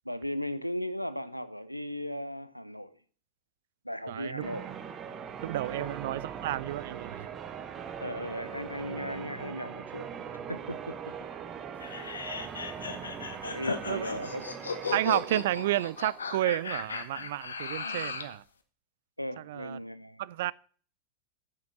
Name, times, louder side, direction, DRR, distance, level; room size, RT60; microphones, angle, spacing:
voice 1, 0.0-3.0 3.8-4.7 5.7-5.9 8.0-11.1 13.4-14.8 19.2-20.2, equal, 90° left, 0.6 m, -37 dB
voice 2, 4.1-4.4 5.4-7.3 13.9-14.1 14.9-18.4 19.4-19.8 20.2-20.5, right 14 dB, 55° right, 0.4 m, -31 dB
Church bell, 4.4-16.7, right 7 dB, 25° right, 1.0 m, -41 dB
sound 1, 11.8-18.4, left 5 dB, 70° left, 1.1 m, -36 dB
9.3 x 6.5 x 6.1 m
figure-of-eight pair, 90°, 0 cm